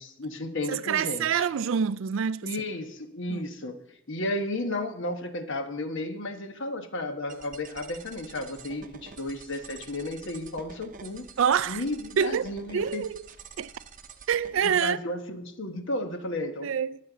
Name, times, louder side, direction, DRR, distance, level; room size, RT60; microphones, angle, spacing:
voice 1, 0.0-1.5 2.4-3.8 4.1-11.3 11.7-13.0 14.6-16.7, left 1 dB, 55° left, 1.2 m, -33 dB
voice 2, 0.7-2.5 3.3-3.4 11.4-11.8 12.2-13.2 13.6-13.7 14.3-15.0 16.6-17.0, right 7 dB, 60° right, 0.4 m, -26 dB
sound 1, 7.3-14.8, right 6 dB, 35° right, 0.7 m, -48 dB
21.5 x 7.7 x 3.9 m
head